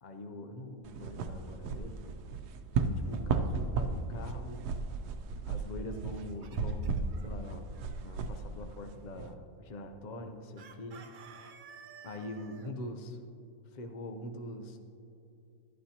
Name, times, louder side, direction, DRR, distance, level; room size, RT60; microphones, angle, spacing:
voice 1, 0.0-2.1 2.7-4.7 5.5-7.7 8.0-11.1 12.0-13.2 13.7-14.8, left 1 dB, 55° left, 6 dB, 0.4 m, -43 dB
sound 1, 0.8-9.3, right 4 dB, 85° right, 1.2 m, -35 dB
Chicken rooster, 5.9-7.2 10.6-12.7, right 6 dB, 70° right, 0.4 m, -52 dB
11.5 x 11.5 x 2.8 m, 2.5 s
omnidirectional pair, 1.7 m